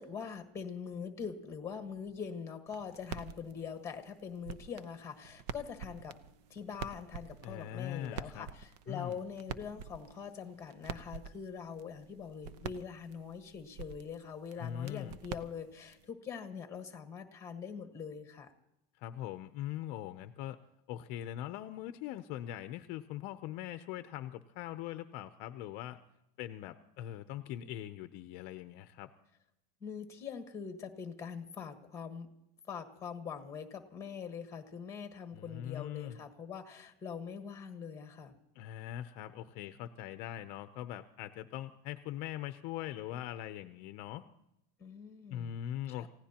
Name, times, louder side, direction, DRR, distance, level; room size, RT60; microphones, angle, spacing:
voice 1, 0.0-6.2 6.5-18.5 29.8-32.3 32.7-38.3 44.8-45.5 46.0-46.1, left 6 dB, 15° left, 7 dB, 1.4 m, -43 dB
sound 1, 2.7-16.1, right 7 dB, 90° right, 0.8 m, -47 dB
voice 2, 7.4-8.5 8.9-9.2 14.6-15.2 18.9-20.6 20.9-26.0 26.4-29.1 35.3-36.2 38.5-44.2 45.3-46.1, left 12 dB, 45° left, 10 dB, 0.6 m, -41 dB
29.0 x 16.5 x 2.9 m, 0.84 s
cardioid pair, 175°, 20 cm